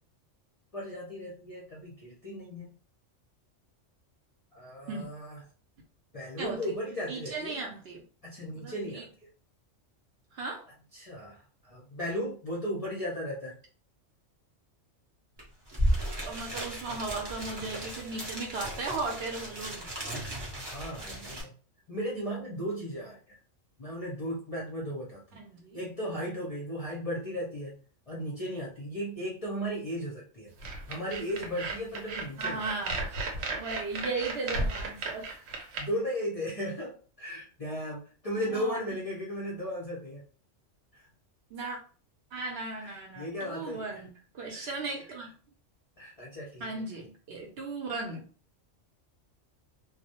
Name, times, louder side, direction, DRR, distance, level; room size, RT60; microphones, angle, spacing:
voice 1, 0.7-2.7 4.5-5.4 6.1-7.6 8.2-9.1 10.9-13.5 16.2-16.3 20.5-21.5 21.9-23.4 23.8-25.4 25.7-27.8 28.1-30.5 30.9-32.7 35.8-40.2 40.9-41.1 42.7-43.9 44.5-44.7 46.0-46.8, equal, 45° left, -4 dB, 0.5 m, -36 dB
voice 2, 6.4-6.7 7.1-8.0 8.4-9.0 10.3-10.6 16.3-19.9 25.4-25.8 32.4-33.2 33.5-35.3 38.5-38.8 41.5-41.8 42.3-45.3 46.6-48.2, right 3 dB, 65° right, 0 dB, 0.8 m, -36 dB
sound 1, 15.4-15.5 15.7-21.4, equal, 25° right, 0.6 m, -34 dB
sound 2, 30.6-35.8, right 3 dB, 90° right, 1.0 m, -34 dB
2.2 x 2.0 x 2.8 m, 0.40 s
omnidirectional pair, 1.3 m